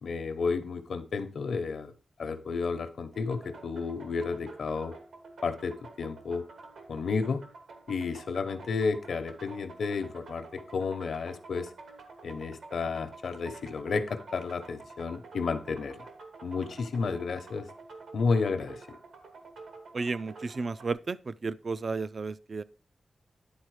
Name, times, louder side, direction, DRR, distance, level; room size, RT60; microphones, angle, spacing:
voice 1, 0.0-1.9 2.2-5.0 5.4-6.5 6.9-7.4 7.9-11.7 12.2-16.1 16.4-17.7 18.1-19.0, left 4 dB, 75° left, 0.9 m, -32 dB
sound 1, 3.1-20.9, right 3 dB, 85° right, 1.5 m, -49 dB
voice 2, 19.9-22.6, right 4 dB, 40° right, 0.3 m, -33 dB
10.5 x 4.2 x 4.8 m
wide cardioid pair, 175°, 0 cm